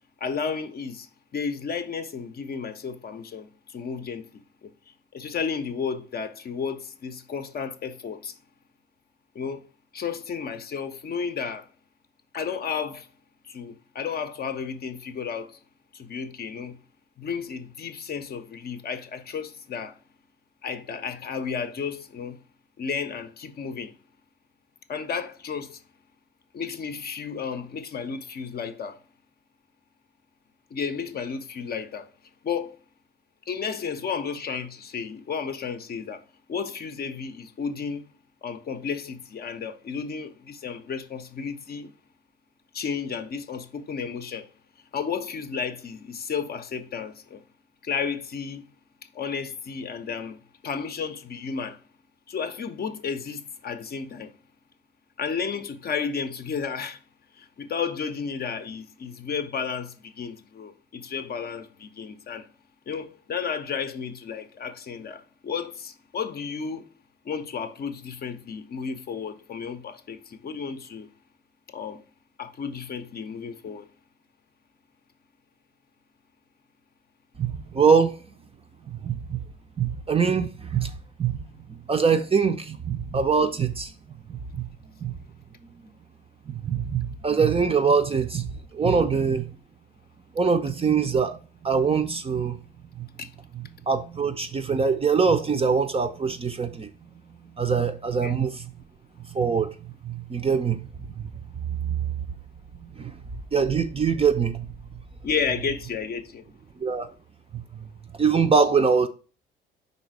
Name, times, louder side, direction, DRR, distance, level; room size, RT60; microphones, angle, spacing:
voice 1, 0.2-4.3 4.6-4.7 5.1-8.3 9.3-9.6 9.9-11.7 12.3-13.1 13.5-15.6 15.9-16.8 17.2-20.0 20.6-22.4 22.8-23.9 24.9-25.8 26.5-29.0 30.7-32.1 32.4-32.8 33.5-36.2 36.5-38.1 38.4-41.9 42.7-44.5 44.9-47.4 47.8-48.6 49.1-51.8 52.3-54.3 55.2-57.0 57.4-62.5 62.9-66.8 67.2-71.1 71.7-72.0 72.4-73.9 88.9-89.1 93.2-93.3 98.2-98.4 105.2-106.5, left 6 dB, 30° left, 0.7 m, -32 dB
voice 2, 77.4-78.2 78.8-79.4 79.8-81.4 81.7-83.9 84.3-84.7 85.0-85.1 86.5-89.5 90.3-92.6 93.0-93.1 93.6-96.9 97.6-98.7 99.3-100.8 101.1-101.3 101.7-102.1 102.8-103.2 103.5-104.7 106.8-107.1 107.5-107.9 108.1-109.1, right 5 dB, 20° right, 0.6 m, -24 dB
5.4 x 3.9 x 4.5 m
figure-of-eight pair, 50°, 29 cm